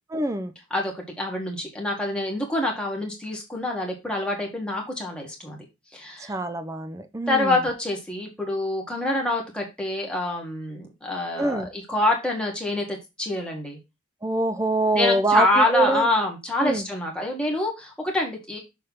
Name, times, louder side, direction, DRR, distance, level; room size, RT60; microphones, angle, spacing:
voice 1, 0.1-0.5 6.3-7.6 11.4-11.7 14.2-16.1 16.6-16.8, right 2 dB, 15° right, 0.5 m, -24 dB
voice 2, 0.7-5.6 5.9-6.3 7.3-13.8 14.9-18.6, left 2 dB, 5° left, 1.8 m, -26 dB
6.6 x 3.5 x 5.5 m
head